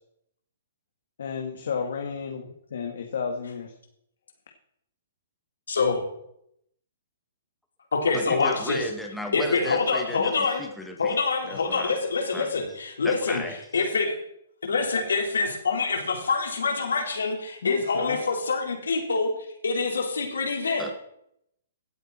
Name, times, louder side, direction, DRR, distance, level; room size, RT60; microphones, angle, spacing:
voice 1, 1.2-3.7 17.6-18.2, left 6 dB, 75° left, 2 dB, 1.9 m, -32 dB
voice 2, 5.7-6.0 8.0-8.8 9.3-10.7 11.0-13.4 13.7-14.1 14.7-19.3 19.6-20.8, left 4 dB, 90° left, 0 dB, 4.4 m, -25 dB
voice 3, 8.1-11.2 11.5-11.9 12.3-12.5 13.0-13.6 20.8-20.9, left 1 dB, ahead, 2 dB, 1.6 m, -35 dB
16.5 x 8.9 x 4.4 m, 0.73 s
hypercardioid pair, 140°, 0 cm